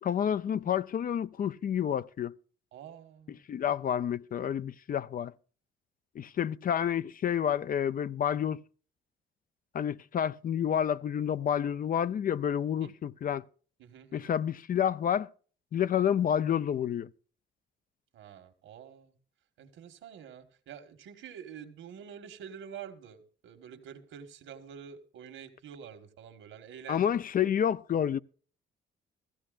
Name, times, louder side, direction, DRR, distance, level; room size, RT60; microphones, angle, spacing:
voice 1, 0.0-2.3 3.3-5.3 6.2-8.6 9.7-13.5 14.1-15.3 15.7-17.1 26.9-28.2, left 9 dB, 45° left, 0.4 m, -29 dB
voice 2, 2.7-3.4 12.8-12.9 13.8-14.3 18.1-19.1 19.6-27.0, right 8 dB, 80° right, 1.6 m, -47 dB
15.5 x 15.0 x 2.5 m
cardioid pair, 90°, 20 cm